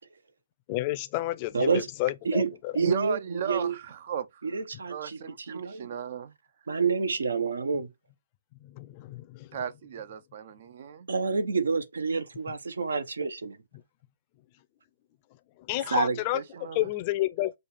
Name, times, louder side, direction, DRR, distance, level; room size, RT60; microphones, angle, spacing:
voice 1, 0.7-2.7 8.6-9.5 15.7-16.4 16.7-17.5, left 17 dB, 30° left, 0.5 m, -30 dB
voice 2, 1.5-1.9 2.2-3.8 4.4-5.2 5.5-5.9 6.7-7.9 11.1-13.6 15.9-16.2, right 4 dB, 75° right, 0.8 m, -28 dB
voice 3, 2.8-4.5 4.9-6.3 9.5-11.1 16.3-16.9, right 8 dB, 50° right, 0.5 m, -35 dB
6.4 x 2.4 x 3.0 m
hypercardioid pair, 145°, 0 cm